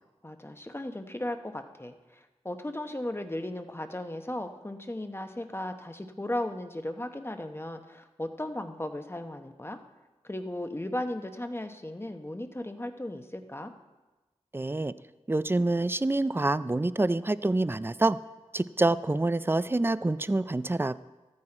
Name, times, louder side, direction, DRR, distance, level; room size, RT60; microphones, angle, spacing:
voice 1, 0.2-9.8 10.2-13.7, left 1 dB, 20° left, 7 dB, 0.8 m, -36 dB
voice 2, 14.5-14.9 15.3-18.2 18.5-21.0, right 2 dB, 20° right, 16 dB, 0.3 m, -26 dB
13.5 x 9.7 x 4.4 m, 1.2 s
wide cardioid pair, 55°, 11 cm